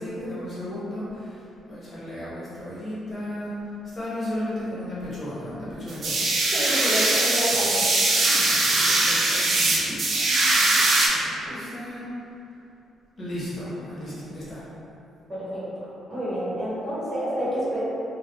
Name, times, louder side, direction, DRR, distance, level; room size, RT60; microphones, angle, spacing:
voice 1, 0.0-3.6 3.9-6.3 8.3-10.8 11.1-12.0 13.2-14.6, left 1 dB, 40° left, -11 dB, 1.2 m, -35 dB
sound 1, 5.9-11.1, right 2 dB, 55° right, 0.5 m, -21 dB
voice 2, 6.5-7.9 15.3-17.8, equal, 30° right, -11 dB, 1.3 m, -29 dB
3.3 x 2.2 x 2.4 m, 2.9 s
cardioid pair, 90°, 0 cm